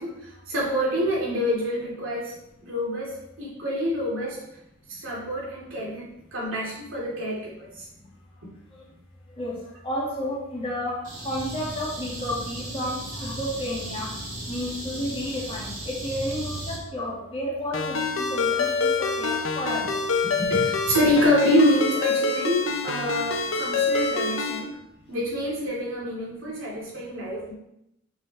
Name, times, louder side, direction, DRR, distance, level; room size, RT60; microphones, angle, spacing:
voice 1, 0.0-2.3 2.6-4.4 4.9-6.0 6.3-7.7 20.4-24.7 25.1-27.5, equal, 85° right, -4 dB, 2.9 m, -26 dB
voice 2, 9.8-11.0 11.2-14.1 14.5-19.8, equal, 30° left, -5 dB, 2.2 m, -31 dB
sound 1, 11.0-16.8, right 1 dB, 40° right, 2.0 m, -36 dB
Ringtone, 17.7-24.6, left 4 dB, 80° left, 0.9 m, -26 dB
6.2 x 5.4 x 4.2 m, 0.82 s
head